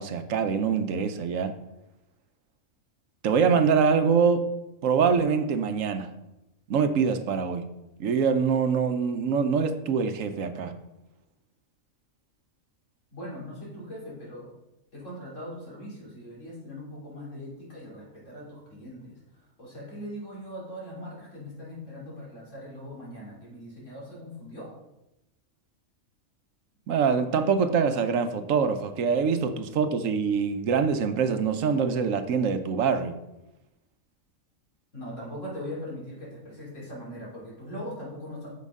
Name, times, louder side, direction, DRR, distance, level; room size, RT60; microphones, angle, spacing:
voice 1, 0.0-1.5 3.2-4.4 4.8-6.1 6.7-7.6 8.0-10.7 26.9-33.2, right 6 dB, 75° right, 9 dB, 1.1 m, -24 dB
voice 2, 13.1-14.5 14.9-24.7 34.9-38.5, equal, 65° left, -5 dB, 3.4 m, -40 dB
9.4 x 6.6 x 3.6 m, 0.92 s
omnidirectional pair, 1.4 m